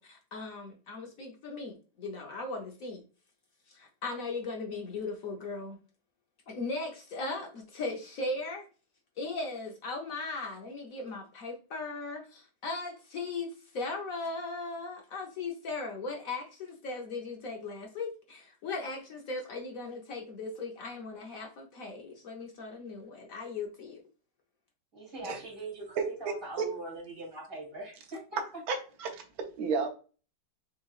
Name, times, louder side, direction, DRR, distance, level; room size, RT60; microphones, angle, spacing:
voice 1, 0.0-3.0 3.7-5.8 6.5-8.7 9.2-24.0, left 3 dB, 65° left, 1 dB, 0.9 m, -38 dB
voice 2, 24.9-28.4, right 2 dB, 30° right, -3 dB, 2.3 m, -42 dB
voice 3, 26.0-26.7 28.7-29.9, right 5 dB, 60° right, 4 dB, 1.1 m, -33 dB
6.1 x 3.1 x 2.3 m, 0.36 s
omnidirectional pair, 2.3 m